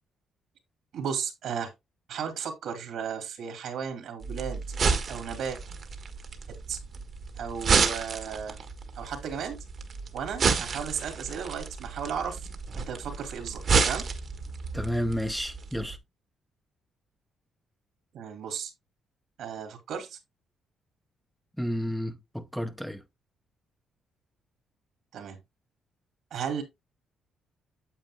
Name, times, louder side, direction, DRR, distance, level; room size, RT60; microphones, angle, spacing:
voice 1, 0.9-1.7 2.1-4.6 5.1-5.6 6.5-6.8 7.3-8.6 9.0-9.6 10.1-12.5 12.7-14.0 18.1-18.7 19.4-20.2 25.1-25.4 26.3-26.6, right 7 dB, 75° right, 2.7 m, -35 dB
sound 1, 4.2-16.0, right 5 dB, 50° right, 1.3 m, -30 dB
voice 2, 14.7-16.0 21.6-23.0, equal, ahead, 0.7 m, -31 dB
9.0 x 7.3 x 2.2 m
cardioid pair, 90°, 0 cm